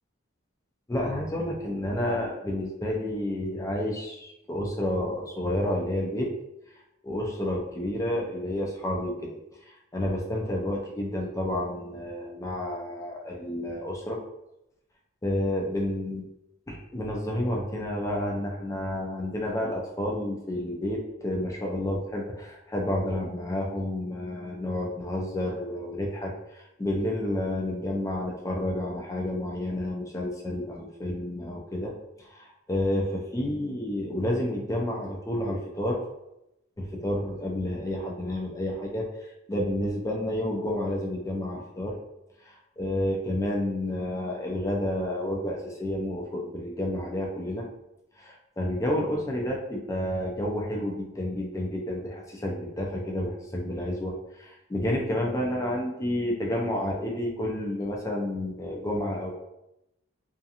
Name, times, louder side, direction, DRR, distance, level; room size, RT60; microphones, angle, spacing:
voice 1, 0.9-6.3 7.0-9.4 9.7-14.2 15.2-16.3 16.7-31.9 32.2-36.0 36.8-42.0 42.4-47.7 48.2-59.3, left 1 dB, 15° left, -1 dB, 0.3 m, -30 dB
2.7 x 2.5 x 2.4 m, 0.89 s
head